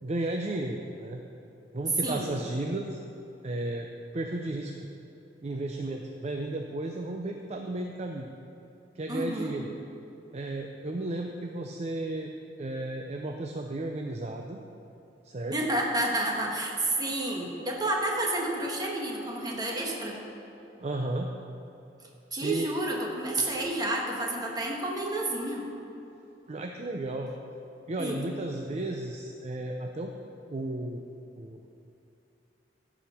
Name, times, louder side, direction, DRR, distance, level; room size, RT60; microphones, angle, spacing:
voice 1, 0.0-1.2 1.7-3.0 3.4-3.9 4.1-4.7 5.4-8.3 9.0-9.7 10.3-12.3 12.6-14.6 15.2-15.5 20.8-21.3 22.4-22.7 26.5-27.3 27.9-30.1 30.5-31.0 31.4-31.7, right 2 dB, 40° right, 3 dB, 0.5 m, -33 dB
voice 2, 2.0-2.3 9.1-9.5 15.5-20.2 22.3-25.7 28.0-28.3, right 1 dB, 20° right, -1 dB, 1.5 m, -30 dB
15.0 x 5.0 x 5.9 m, 2.8 s
head